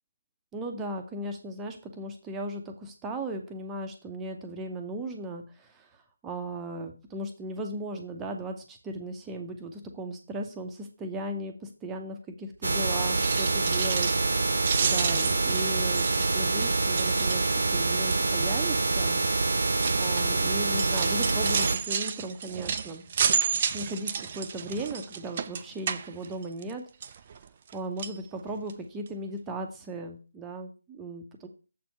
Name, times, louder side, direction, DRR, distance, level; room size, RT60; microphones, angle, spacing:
voice 1, 0.5-5.9 6.2-14.1 14.8-16.1 16.3-19.2 20.0-23.0 23.7-26.8 27.7-31.5, right 1 dB, 10° right, 3 dB, 0.8 m, -37 dB
sound 1, 12.6-21.8, right 3 dB, 55° right, 0.9 m, -26 dB
sound 2, 13.2-14.4 14.6-17.8 18.1-18.5 19.2-26.7 27.0-27.7 28.0-28.2 28.7-28.8 29.1-29.2, right 7 dB, 30° right, 0.4 m, -32 dB
7.5 x 4.3 x 5.7 m, 0.35 s
figure-of-eight pair, 150°, 0 cm